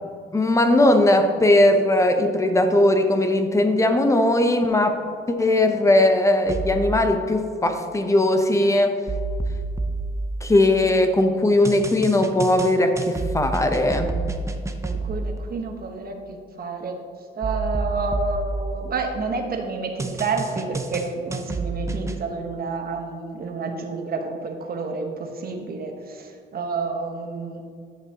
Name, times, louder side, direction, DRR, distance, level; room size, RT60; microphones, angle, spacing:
voice 1, 0.3-5.0 5.3-9.0 10.4-14.2, left 1 dB, 15° left, 6 dB, 0.8 m, -19 dB
sound 1, 6.5-7.0 9.1-10.9 11.6-15.4 17.4-19.3 20.0-22.2, right 3 dB, 15° right, 0.6 m, -29 dB
voice 2, 14.8-16.2 16.6-17.0 17.4-27.6, right 4 dB, 50° right, 3 dB, 1.2 m, -29 dB
11.0 x 6.7 x 2.9 m, 2.2 s
cardioid pair, 90°, 20 cm